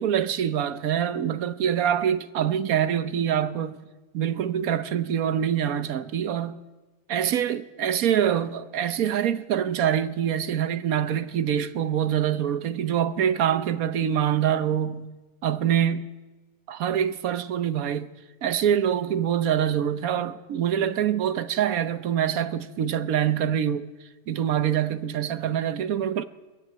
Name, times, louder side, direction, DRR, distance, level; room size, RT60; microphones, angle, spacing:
voice 1, 0.0-3.8 4.1-6.6 7.1-15.1 15.4-16.1 16.7-18.1 18.4-23.9 24.3-26.2, right 9 dB, 75° right, 1.3 m, -25 dB
21.0 x 14.5 x 9.2 m
omnidirectional pair, 1.5 m